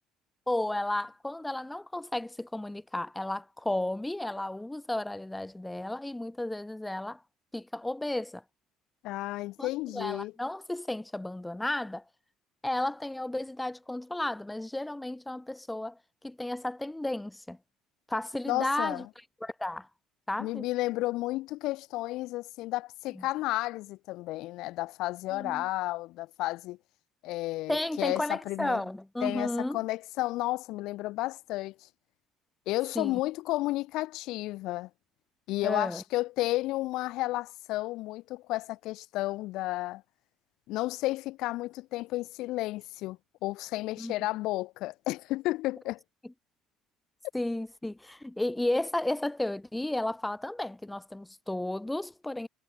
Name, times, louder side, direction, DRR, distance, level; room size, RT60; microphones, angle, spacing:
voice 1, 0.5-7.2 7.5-8.4 9.6-12.0 12.6-17.6 18.1-19.1 19.4-19.9 20.3-20.7 23.2-23.3 25.3-25.6 27.7-29.8 33.0-33.2 35.6-36.0 44.0-44.1 46.2-46.3 47.3-52.5, left 1 dB, 10° left, 0.3 m, -33 dB
voice 2, 9.0-10.3 18.5-19.0 20.4-26.8 27.2-28.8 29.2-31.7 32.7-34.9 35.5-40.0 40.7-46.0, left 18 dB, 75° left, 0.4 m, -32 dB
supercardioid pair, 90°, 0 cm